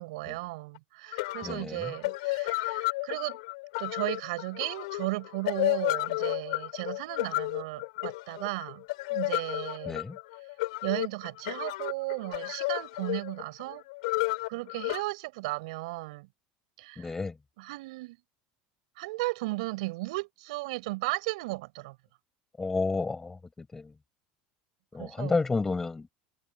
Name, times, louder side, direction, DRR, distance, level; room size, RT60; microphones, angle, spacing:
voice 1, 0.0-3.4 3.8-8.8 9.1-10.0 10.8-13.8 14.5-16.3 16.8-17.1 17.6-18.2 19.0-22.0 25.0-25.4, right 22 dB, 80° right, 7.3 m, -35 dB
sound 1, 0.8-0.9 1.1-15.0, left 22 dB, 85° left, 4.1 m, -32 dB
voice 2, 1.4-1.8 9.9-10.2 17.0-17.3 22.6-23.4 23.7-23.9 24.9-26.1, left 3 dB, 10° left, 5.4 m, -30 dB
cardioid pair, 155°, 3 cm